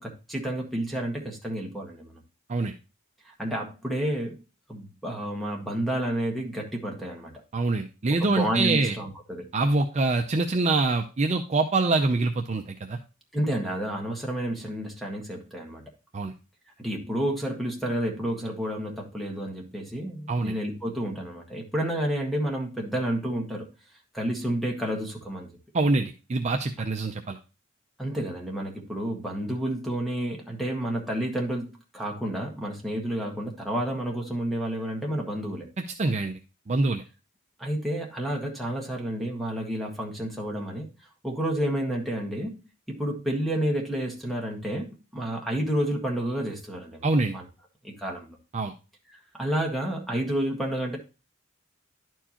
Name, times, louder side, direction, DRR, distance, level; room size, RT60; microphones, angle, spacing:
voice 1, 0.0-2.2 3.2-4.4 4.7-7.3 8.1-9.5 13.3-15.8 16.8-23.7 24.1-25.5 28.0-35.7 37.6-40.9 41.2-42.5 42.9-47.4 47.8-48.4 49.1-51.0, right 1 dB, ahead, 0 dB, 1.5 m, -30 dB
voice 2, 7.5-8.9 9.5-13.0 16.1-16.3 20.3-20.5 25.7-27.4 35.8-36.4 36.7-37.0 47.0-47.4 48.5-48.7, right 3 dB, 35° right, 4 dB, 0.5 m, -25 dB
11.0 x 4.5 x 2.9 m, 0.30 s
head